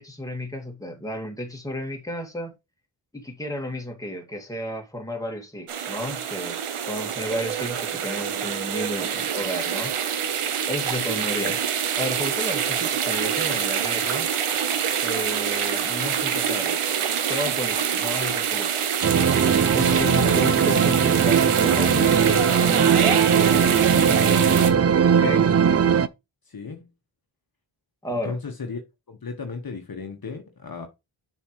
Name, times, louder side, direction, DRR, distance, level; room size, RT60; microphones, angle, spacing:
voice 1, 0.0-2.6 3.1-6.6 6.9-9.9 10.7-11.6 12.0-14.3 15.0-16.9 17.3-18.7 19.7-24.5 25.1-25.5 28.0-28.4, left 1 dB, 5° left, 2.0 m, -32 dB
sound 1, 5.7-24.7, right 8 dB, 80° right, 1.0 m, -26 dB
sound 2, 19.0-26.1, right 7 dB, 30° right, 0.4 m, -19 dB
voice 2, 20.1-20.6 26.5-26.9 28.2-28.8 29.1-30.9, left 4 dB, 45° left, 1.3 m, -35 dB
7.1 x 5.5 x 3.1 m
cardioid pair, 50°, 50 cm